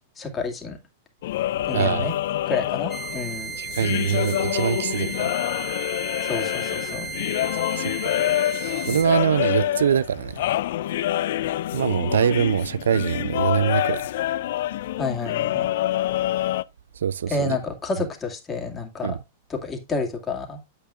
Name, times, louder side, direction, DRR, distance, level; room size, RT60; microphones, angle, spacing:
voice 1, 0.2-0.8 1.7-2.2 2.5-3.6 6.2-7.1 15.0-15.7 17.3-19.2 19.5-20.6, left 4 dB, 20° left, 2.2 m, -29 dB
sound 1, 1.2-16.6, left 13 dB, 65° left, 0.3 m, -26 dB
voice 2, 1.7-2.1 3.6-5.1 7.7-7.9 8.9-10.4 11.7-14.1 17.0-17.6 19.0-19.2, right 8 dB, 80° right, 0.3 m, -23 dB
sound 2, 2.9-9.1, right 5 dB, ahead, 1.2 m, -35 dB
8.5 x 8.3 x 2.5 m
hypercardioid pair, 105°, 0 cm